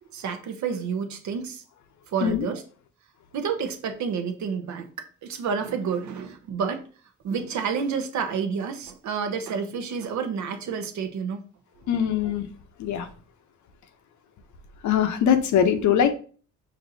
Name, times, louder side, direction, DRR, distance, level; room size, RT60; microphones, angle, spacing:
voice 1, 0.1-1.6 2.1-2.6 3.3-6.9 7.2-11.4 12.2-12.3, right 6 dB, 70° right, 6 dB, 0.8 m, -29 dB
voice 2, 11.9-12.5 12.8-13.1 14.8-16.1, left 8 dB, 70° left, 8 dB, 0.7 m, -22 dB
5.2 x 2.6 x 2.7 m, 0.40 s
cardioid pair, 90°, 30 cm